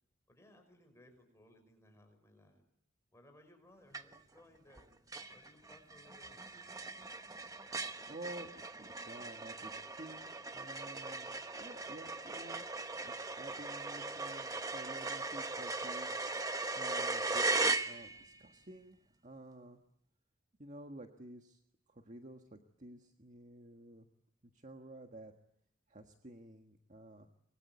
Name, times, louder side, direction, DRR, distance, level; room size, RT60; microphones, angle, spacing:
voice 1, 0.3-2.6 3.1-4.9 5.3-6.4, left 1 dB, 15° left, 5 dB, 5.6 m, -62 dB
sound 1, 3.9-4.4 4.7-4.8 5.1-18.4, right 3 dB, 20° right, 1.1 m, -38 dB
voice 2, 7.7-11.3 11.6-12.6 13.0-16.1 16.4-19.8 20.6-21.6 21.9-24.1 24.4-25.3 25.9-27.3, right 1 dB, 40° right, 4 dB, 1.6 m, -52 dB
25.0 x 22.5 x 9.4 m, 0.70 s
head